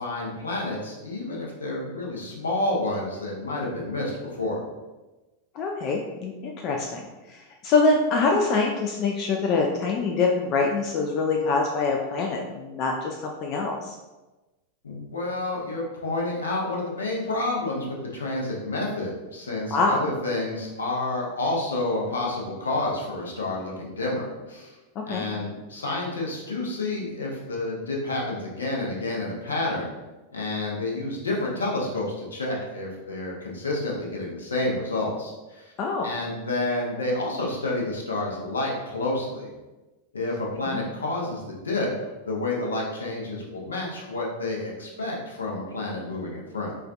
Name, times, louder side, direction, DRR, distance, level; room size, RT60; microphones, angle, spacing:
voice 1, 0.0-4.6 14.8-24.8 25.1-29.9 30.3-35.7 36.0-39.5 40.1-46.8, left 2 dB, 70° left, -2 dB, 0.7 m, -29 dB
voice 2, 5.5-13.9 19.7-20.0 25.0-25.2 35.8-36.1 40.7-40.8, left 3 dB, 35° left, 1 dB, 0.3 m, -25 dB
4.3 x 2.4 x 2.4 m, 1.1 s
figure-of-eight pair, 90°, 0 cm